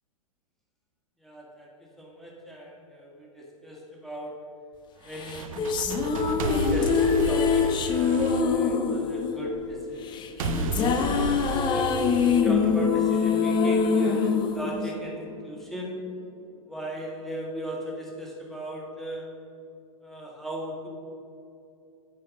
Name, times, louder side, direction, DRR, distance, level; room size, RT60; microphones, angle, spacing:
voice 1, 1.2-4.5 5.0-5.9 6.5-12.0 12.3-16.0 16.7-19.3 20.0-20.9, equal, ahead, -3 dB, 1.8 m, -37 dB
sound 1, 5.1-9.2 10.4-13.2, right 5 dB, 65° right, 0.6 m, -33 dB
sound 2, 5.2-15.6, left 6 dB, 25° left, 0.6 m, -24 dB
9.1 x 4.6 x 6.3 m, 2.7 s
hypercardioid pair, 110°, 18 cm